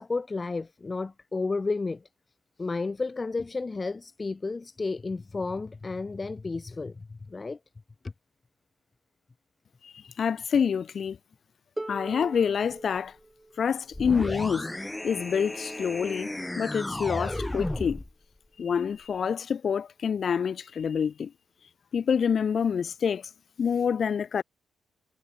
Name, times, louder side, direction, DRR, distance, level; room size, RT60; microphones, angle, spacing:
voice 1, 0.0-2.0 2.6-7.6, left 3 dB, 30° left, 4.4 m, -32 dB
voice 2, 9.8-11.2 11.9-13.2 13.6-14.7 15.0-16.3 16.6-18.0 18.6-21.3 21.9-23.3 23.6-24.4, left 7 dB, 55° left, 0.7 m, -27 dB
Harp, 11.8-17.6 18.6-18.7, right 2 dB, 15° right, 2.0 m, -44 dB
sound 1, 13.9-18.1, left 1 dB, 15° left, 2.4 m, -33 dB
hypercardioid pair, 50°, 0 cm